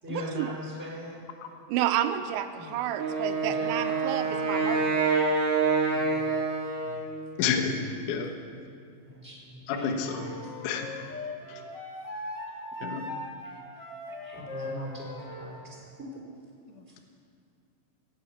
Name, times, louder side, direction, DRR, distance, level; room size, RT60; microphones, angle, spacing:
voice 1, 0.0-1.2 2.5-2.8 3.3-4.8 5.9-6.3 6.8-7.5 9.0-10.4 12.4-12.5 13.4-13.5 14.0-15.8 16.9-17.0, equal, 5° right, -5 dB, 3.9 m, -41 dB
voice 2, 1.7-5.1, right 11 dB, 85° right, 8 dB, 2.7 m, -30 dB
Wind instrument woodwind instrument, 3.0-7.2, right 4 dB, 65° right, 1.5 m, -27 dB
voice 3, 7.4-7.7 8.1-8.3 9.7-10.3 10.6-10.9 11.5-11.6 12.8-13.0 16.8-17.0, left 6 dB, 80° left, 4 dB, 1.8 m, -29 dB
Wind instrument woodwind instrument 2, 10.0-15.5, left 2 dB, 50° left, 1.3 m, -39 dB
17.5 x 7.7 x 8.5 m, 2.4 s
omnidirectional pair, 5.4 m